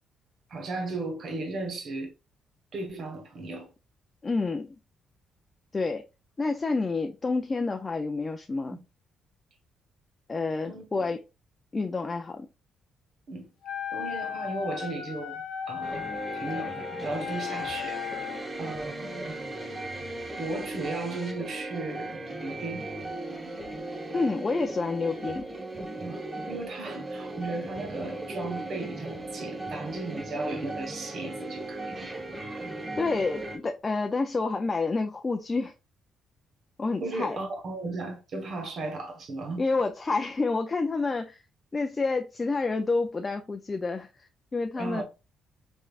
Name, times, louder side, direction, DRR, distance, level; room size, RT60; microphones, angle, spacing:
voice 1, 0.5-2.1 2.7-3.7 8.7-8.8 10.7-11.1 13.3-13.5 13.9-18.3 18.6-19.4 20.4-22.9 26.0-26.2 26.5-32.1 37.0-39.6 44.8-45.0, right 2 dB, 60° right, 1.1 m, -36 dB
voice 2, 4.2-4.7 5.7-6.0 6.4-8.8 10.3-11.2 11.7-12.5 24.1-25.5 33.0-35.7 36.8-37.4 39.6-41.4 41.7-45.0, left 3 dB, 30° left, 0.4 m, -29 dB
Wind instrument woodwind instrument, 13.6-18.4, left 9 dB, 75° left, 0.8 m, -36 dB
sound 1, 15.8-33.6, right 2 dB, 25° right, 0.9 m, -37 dB
3.6 x 3.2 x 2.4 m
cardioid pair, 90°, 0 cm